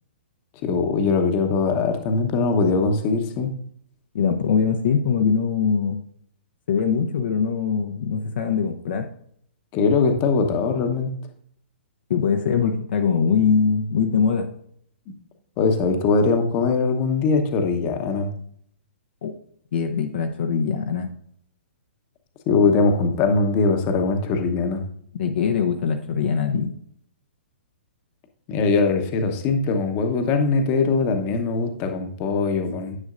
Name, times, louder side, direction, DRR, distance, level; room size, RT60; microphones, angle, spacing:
voice 1, 0.6-3.5 9.7-11.1 15.6-18.3 22.5-24.8 28.5-33.0, left 4 dB, 30° left, 5 dB, 1.0 m, -21 dB
voice 2, 4.1-6.0 6.7-9.1 12.1-14.5 19.2-19.3 19.7-21.1 25.1-26.7, left 6 dB, 60° left, 4 dB, 0.7 m, -22 dB
9.7 x 6.2 x 2.5 m, 0.65 s
hypercardioid pair, 125°, 6 cm